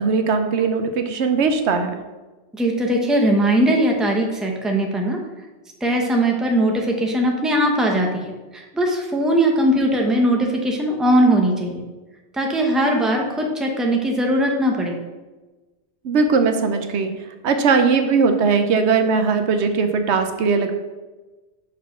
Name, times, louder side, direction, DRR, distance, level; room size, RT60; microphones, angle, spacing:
voice 1, 0.0-1.9 16.0-17.1 17.4-20.8, right 5 dB, 75° right, 7 dB, 0.9 m, -19 dB
voice 2, 2.5-5.2 5.8-11.8 12.3-15.0, right 1 dB, ahead, 1 dB, 0.8 m, -20 dB
6.3 x 4.2 x 5.7 m, 1.2 s
omnidirectional pair, 1.2 m